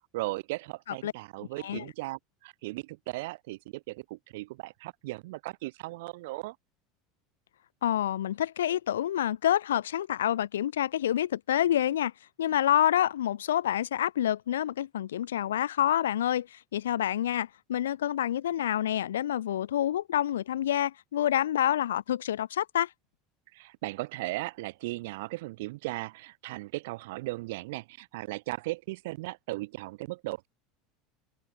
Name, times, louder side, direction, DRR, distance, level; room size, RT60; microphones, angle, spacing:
voice 1, 0.0-6.6 23.5-30.5, right 20 dB, 70° right, 5.4 m, -37 dB
voice 2, 7.8-12.1 12.4-22.9, left 11 dB, 85° left, 2.2 m, -27 dB
hypercardioid pair, 85°, 0 cm